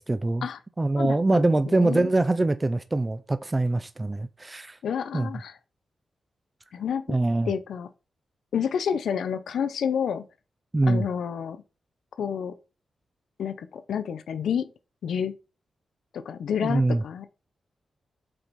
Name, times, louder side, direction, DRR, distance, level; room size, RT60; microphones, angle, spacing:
voice 1, 0.0-0.5 0.8-4.8 5.1-5.3 7.1-7.5 10.7-11.1 16.6-17.0, right 2 dB, 15° right, 0.3 m, -24 dB
voice 2, 1.0-2.1 4.8-5.5 6.7-7.2 7.4-7.9 8.5-10.3 10.9-11.6 12.2-12.5 13.4-14.7 15.0-15.3 16.1-17.3, left 7 dB, 90° left, 0.5 m, -29 dB
6.4 x 4.1 x 4.5 m
wide cardioid pair, 165°, 0 cm